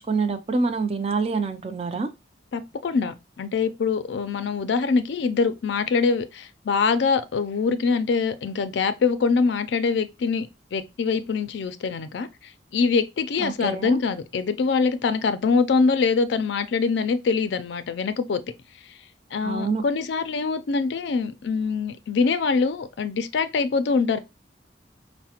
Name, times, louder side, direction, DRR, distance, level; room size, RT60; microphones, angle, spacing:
voice 1, 0.0-2.1 13.4-14.0 19.4-19.8, right 4 dB, 35° right, 0.4 m, -26 dB
voice 2, 2.5-18.4 18.9-19.0 19.3-24.2, left 4 dB, 70° left, 0.4 m, -24 dB
4.8 x 2.1 x 2.8 m
head